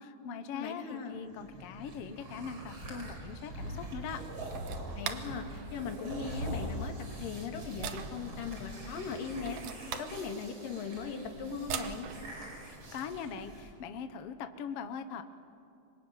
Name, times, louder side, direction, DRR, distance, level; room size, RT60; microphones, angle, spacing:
voice 1, 0.0-4.2 12.6-15.2, left 6 dB, 60° left, 8 dB, 1.6 m, -41 dB
voice 2, 0.5-1.2 4.9-9.6 9.9-12.1, left 5 dB, 80° left, 3 dB, 3.9 m, -39 dB
sound 1, 1.3-13.7, right 1 dB, 35° right, 5.2 m, -43 dB
sound 2, 3.7-13.0, right 8 dB, 75° right, 2.6 m, -45 dB
26.5 x 24.5 x 9.1 m, 2.5 s
omnidirectional pair, 3.9 m